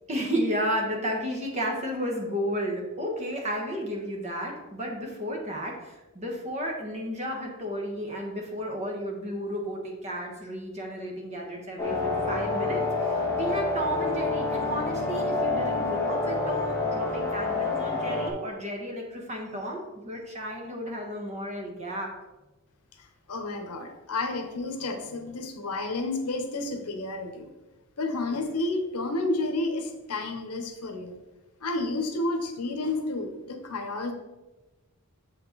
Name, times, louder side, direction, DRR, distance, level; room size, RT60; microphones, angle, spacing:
voice 1, 0.1-22.1, equal, 30° right, 0 dB, 1.4 m, -33 dB
sound 1, 11.8-18.3, left 3 dB, 15° left, 1.4 m, -28 dB
voice 2, 23.3-27.5 28.0-31.2 31.6-34.1, left 2 dB, 90° left, 6 dB, 0.9 m, -31 dB
6.9 x 5.1 x 4.0 m, 1.1 s
head